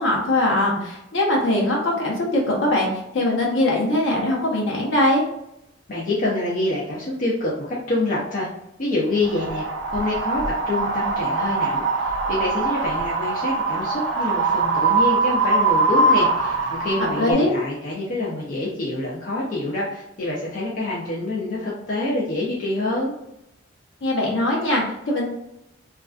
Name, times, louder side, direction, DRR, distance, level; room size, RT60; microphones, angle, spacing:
voice 1, 0.0-5.2 17.0-17.5 24.0-25.2, left 1 dB, 70° left, -3 dB, 0.8 m, -21 dB
voice 2, 5.9-8.5 8.8-9.7 9.9-23.1, left 2 dB, 45° left, -5 dB, 0.4 m, -26 dB
Wind, 9.2-17.3, right 3 dB, 75° right, 0.4 m, -22 dB
2.3 x 2.2 x 2.3 m, 0.84 s
head